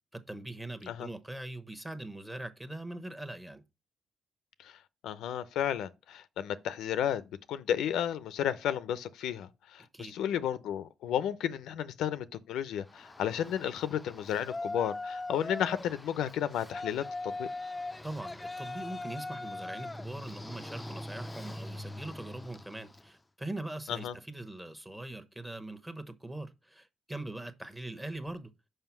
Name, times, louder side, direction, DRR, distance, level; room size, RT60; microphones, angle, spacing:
voice 1, 0.1-3.6 9.9-10.1 18.0-28.5, right 1 dB, 10° right, 1.0 m, -42 dB
voice 2, 5.0-7.2 7.5-17.5 23.9-24.1, left 10 dB, 85° left, 0.5 m, -33 dB
Yell, 12.9-23.1, left 2 dB, 15° left, 0.4 m, -41 dB
5.6 x 5.1 x 6.0 m
cardioid pair, 90°, 0 cm